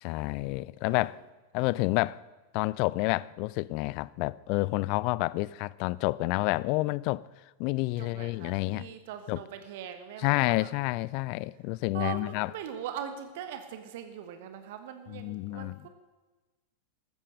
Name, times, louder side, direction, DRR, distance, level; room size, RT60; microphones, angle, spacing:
voice 1, 0.0-1.2 1.5-2.2 2.5-7.2 7.6-8.9 9.3-9.4 10.2-12.5 15.1-15.8, left 21 dB, 45° left, 0.4 m, -29 dB
voice 2, 8.0-10.7 11.9-15.9, right 9 dB, 50° right, 1.4 m, -41 dB
14.5 x 14.0 x 6.5 m
figure-of-eight pair, 90°, 0 cm